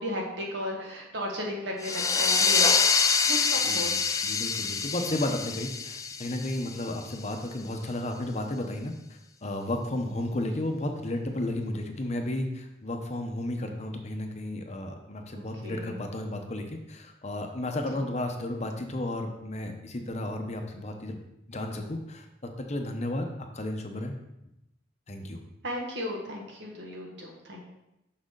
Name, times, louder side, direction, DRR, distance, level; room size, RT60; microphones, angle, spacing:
voice 1, 0.0-2.8 3.2-4.2 15.3-16.0 17.9-18.0 25.6-27.6, equal, 75° right, -1 dB, 1.7 m, -35 dB
sound 1, 1.8-7.1, left 5 dB, 20° left, 0.4 m, -26 dB
voice 2, 3.7-8.9 9.4-21.2 21.5-23.3 23.5-24.1 24.4-24.5 25.1-25.4, left 1 dB, 40° left, 4 dB, 0.8 m, -33 dB
6.4 x 6.2 x 3.8 m, 0.88 s
head